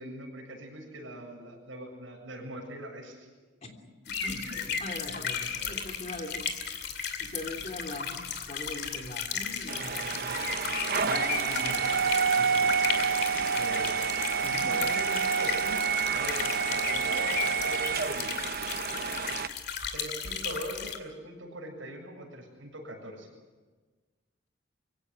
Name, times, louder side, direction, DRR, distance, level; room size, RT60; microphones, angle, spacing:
voice 1, 0.0-3.3 4.5-4.6 5.6-5.8 11.6-11.8 13.5-14.1 14.6-15.8 16.1-18.5 19.9-23.3, right 1 dB, 80° right, 1 dB, 7.4 m, -41 dB
sound 1, 4.1-21.0, left 7 dB, 60° left, 2.6 m, -35 dB
voice 2, 4.2-6.4 7.2-10.4 11.0-11.8 12.3-12.8 14.4-14.7, left 1 dB, 35° left, 4 dB, 3.3 m, -41 dB
sound 2, 9.7-19.5, right 6 dB, 50° right, 0.8 m, -28 dB
24.0 x 16.5 x 9.6 m, 1.3 s
head